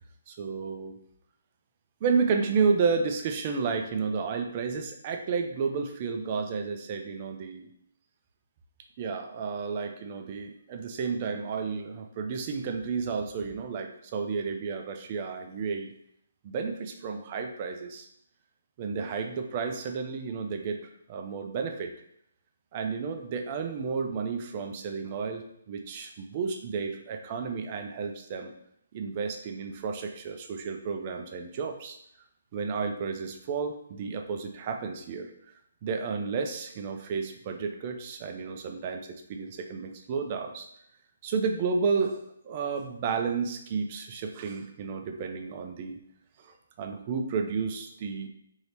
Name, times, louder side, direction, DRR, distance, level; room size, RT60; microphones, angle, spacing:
voice 1, 0.3-1.0 2.0-7.7 9.0-15.9 16.4-18.1 18.8-20.8 21.1-21.9 22.7-28.5 28.9-32.0 32.5-35.3 35.8-40.7 41.2-42.2 42.4-46.0 46.4-48.3, right 5 dB, 30° right, 5 dB, 0.3 m, -31 dB
2.8 x 2.7 x 3.3 m, 0.72 s
hypercardioid pair, 165°, 0 cm